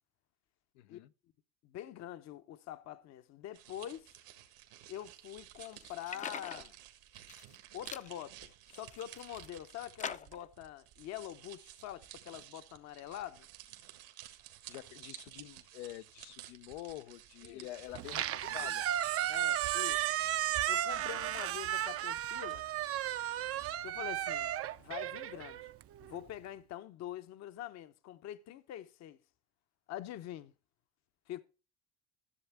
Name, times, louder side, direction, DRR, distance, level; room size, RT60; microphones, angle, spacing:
voice 1, 0.7-1.1 14.7-18.9 21.2-21.3, left 16 dB, 85° left, 0.6 m, -47 dB
voice 2, 1.6-4.1 4.9-6.7 7.7-13.5 17.4-17.7 18.4-18.7 19.3-20.0 20.7-22.6 23.8-24.5 24.8-25.6 26.0-29.2 29.9-30.5 31.3-31.4, left 12 dB, 50° left, 0.8 m, -45 dB
sound 1, 3.5-22.6, right 13 dB, 75° right, 1.7 m, -54 dB
sound 2, 5.6-6.7 7.2-7.6 7.9-8.1 8.7-9.5 10.0-10.5, left 6 dB, 25° left, 0.5 m, -43 dB
Squeak, 17.9-26.2, right 12 dB, 45° right, 0.6 m, -34 dB
13.5 x 7.1 x 3.3 m
supercardioid pair, 85°, 33 cm